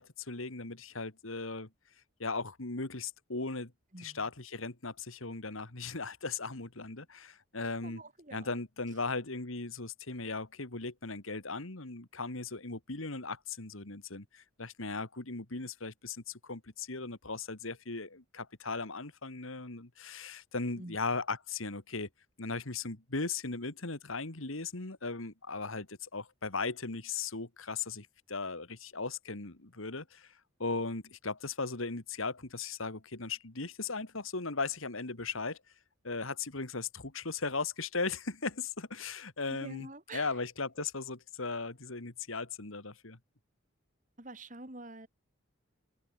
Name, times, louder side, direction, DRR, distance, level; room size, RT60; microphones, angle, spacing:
voice 1, 0.0-1.7 2.2-3.7 4.0-8.0 8.3-22.1 22.4-30.3 30.6-35.6 36.0-39.9 40.1-43.2, left 4 dB, 80° left, 2.3 m, -37 dB
voice 2, 3.9-4.3 7.8-8.6 20.8-21.0 39.5-40.4 40.8-40.9 44.2-45.1, right 2 dB, 40° right, 2.8 m, -47 dB
head